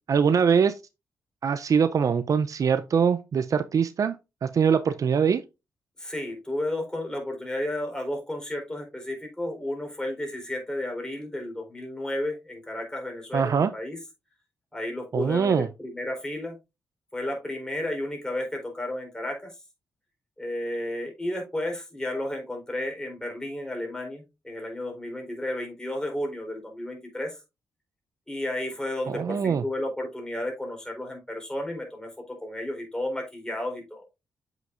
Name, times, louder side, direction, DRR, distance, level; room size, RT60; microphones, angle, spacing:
voice 1, 0.1-0.8 1.4-4.2 4.4-5.4 13.3-13.7 15.1-15.7 29.1-29.6, right 6 dB, 60° right, 0.5 m, -23 dB
voice 2, 6.0-14.0 14.7-16.6 17.1-19.5 20.4-27.4 28.3-34.0, left 1 dB, 10° left, 3.9 m, -32 dB
7.6 x 6.1 x 2.5 m
supercardioid pair, 55°, 7 cm